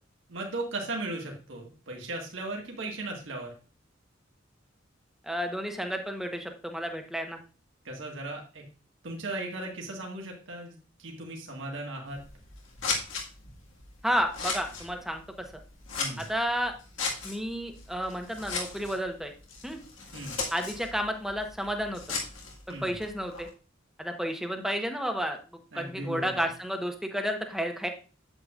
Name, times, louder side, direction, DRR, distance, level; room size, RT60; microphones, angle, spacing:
voice 1, 0.3-3.5 7.8-8.6 9.0-12.2 16.0-16.3 20.1-20.4 22.7-23.0 25.7-26.5, right 2 dB, 75° right, 0 dB, 1.7 m, -37 dB
voice 2, 5.2-7.4 14.0-15.2 15.5-15.6 16.2-16.7 17.2-19.3 19.6-19.8 20.5-22.2 22.7-23.5 24.0-25.4 25.7-27.9, equal, ahead, 4 dB, 1.0 m, -31 dB
Scissors, 12.1-23.5, left 4 dB, 85° left, 1.8 m, -38 dB
8.8 x 7.8 x 2.5 m, 0.37 s
head